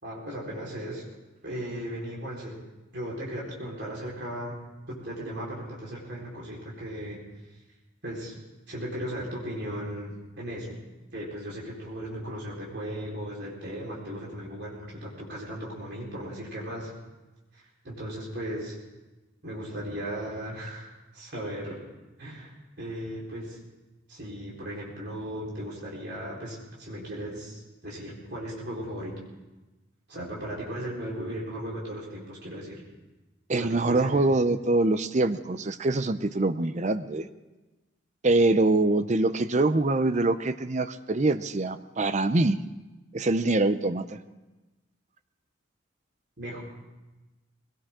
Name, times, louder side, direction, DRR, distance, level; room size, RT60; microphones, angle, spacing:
voice 1, 0.0-1.0 1.4-2.6 2.9-4.6 4.9-7.2 8.0-8.3 8.7-10.8 11.1-16.9 17.5-18.8 19.4-21.8 22.2-23.6 24.1-29.1 30.1-32.8 33.5-34.2 46.4-46.6, equal, 50° right, -4 dB, 4.3 m, -37 dB
voice 2, 33.5-37.3 38.2-42.6 43.1-44.2, right 2 dB, 35° right, 12 dB, 0.5 m, -24 dB
21.0 x 17.5 x 3.7 m, 1.1 s
head